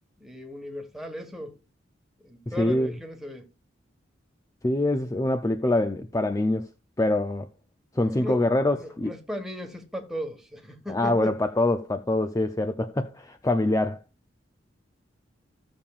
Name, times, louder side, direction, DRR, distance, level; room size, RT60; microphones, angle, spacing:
voice 1, 0.2-1.5 2.2-3.4 7.9-8.4 8.8-11.4, left 1 dB, ahead, 1.5 m, -36 dB
voice 2, 2.5-2.9 4.6-6.7 7.0-7.5 7.9-9.1 10.9-14.0, left 1 dB, 15° left, 0.5 m, -24 dB
15.5 x 7.1 x 2.4 m
head